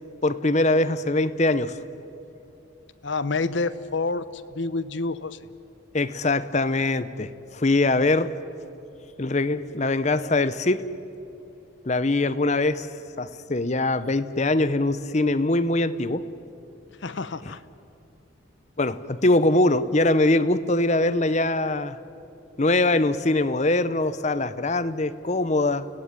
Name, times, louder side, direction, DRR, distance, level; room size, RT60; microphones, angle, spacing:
voice 1, 0.2-1.8 5.9-8.3 9.2-10.8 11.8-12.9 13.2-16.3 17.4-17.5 18.8-22.0 22.6-25.9, left 2 dB, 35° left, 13 dB, 0.8 m, -22 dB
voice 2, 3.0-5.4 17.0-17.6, left 3 dB, 65° left, 14 dB, 0.8 m, -28 dB
29.5 x 17.0 x 9.8 m, 2.8 s
head